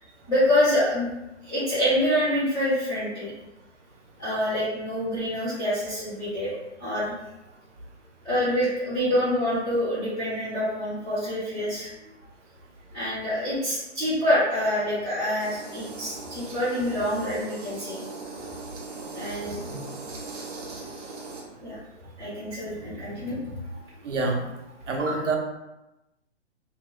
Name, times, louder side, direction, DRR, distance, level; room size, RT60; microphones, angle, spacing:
voice 1, 0.3-1.1 1.4-3.3 4.2-6.5 6.8-7.2 8.2-11.9 12.9-18.0 19.1-19.6 21.6-21.8 22.2-23.6, left 1 dB, 5° left, -17 dB, 0.3 m, -26 dB
sound 1, 15.4-21.4, right 3 dB, 35° right, 0.7 m, -39 dB
voice 2, 24.0-24.4 24.9-25.4, right 3 dB, 80° right, 1 dB, 0.8 m, -26 dB
2.8 x 2.1 x 3.2 m, 0.96 s
hypercardioid pair, 140°, 35 cm